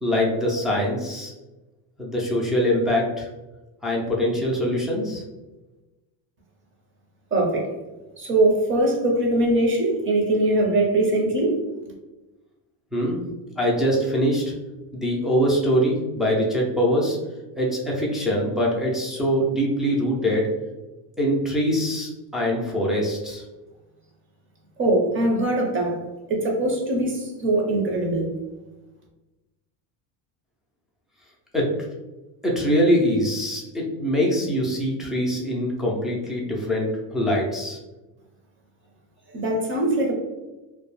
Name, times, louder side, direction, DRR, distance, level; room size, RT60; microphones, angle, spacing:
voice 1, 0.0-1.3 2.0-3.3 3.8-5.2 12.9-13.2 13.6-14.5 14.9-17.2 17.6-20.5 21.2-23.4 31.5-31.7 32.4-37.8, equal, ahead, -4 dB, 0.3 m, -23 dB
voice 2, 7.3-7.7 8.2-11.6 24.8-26.0 26.3-28.3 39.3-40.1, right 1 dB, 25° right, -1 dB, 0.7 m, -22 dB
2.3 x 2.1 x 3.1 m, 1.1 s
cardioid pair, 120°, 48 cm